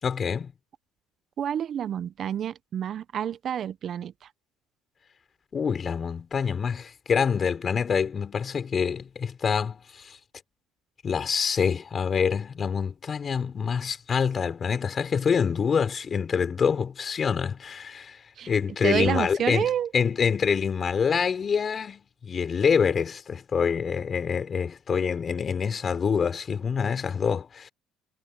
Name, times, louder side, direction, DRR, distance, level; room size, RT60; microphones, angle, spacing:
voice 1, 0.0-0.5 5.5-9.8 10.0-10.2 11.0-18.2 18.5-27.7, left 6 dB, 40° left, 5.1 m, -26 dB
voice 2, 1.4-4.1 18.4-18.5 18.8-19.9, right 9 dB, 50° right, 0.8 m, -28 dB
supercardioid pair, 85°, 0 cm